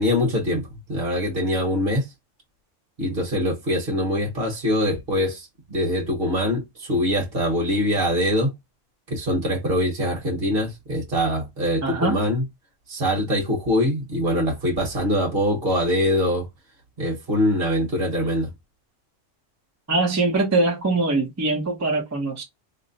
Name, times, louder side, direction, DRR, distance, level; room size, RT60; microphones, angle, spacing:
voice 1, 0.0-2.1 3.0-8.5 9.1-12.4 12.9-16.4 17.0-18.5, left 1 dB, 50° right, 1.4 m, -23 dB
voice 2, 11.8-12.1 19.9-22.4, right 3 dB, 20° right, 0.5 m, -22 dB
3.0 x 2.1 x 3.9 m
omnidirectional pair, 1.3 m